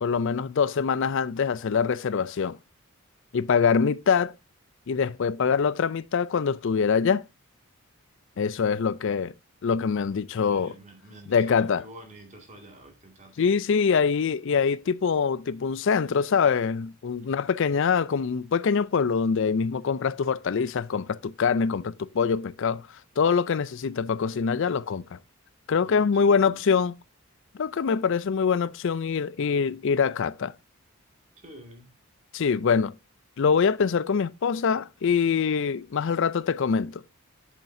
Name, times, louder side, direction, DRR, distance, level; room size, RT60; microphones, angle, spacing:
voice 1, 0.0-2.6 3.3-4.3 4.9-7.2 8.4-9.3 9.6-10.7 11.3-11.8 13.4-22.9 23.2-25.2 25.7-26.9 27.5-30.5 32.3-32.9 33.4-37.0, left 6 dB, 55° left, 0.4 m, -24 dB
voice 2, 10.5-13.3 25.8-26.6 31.4-31.9, right 1 dB, 35° right, 2.2 m, -48 dB
8.0 x 7.3 x 2.6 m
head